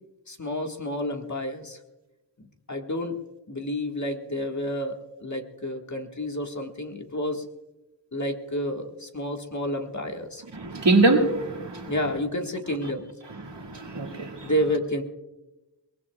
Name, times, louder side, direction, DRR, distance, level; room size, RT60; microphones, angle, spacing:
voice 1, 0.3-1.8 2.4-3.2 3.5-7.4 8.1-10.4 11.9-13.1 14.4-15.0, equal, 40° left, 2 dB, 1.7 m, -30 dB
voice 2, 10.5-11.9 13.3-14.5, right 2 dB, 80° right, 2 dB, 2.1 m, -24 dB
22.0 x 19.5 x 2.4 m, 1.0 s
wide cardioid pair, 50°, 42 cm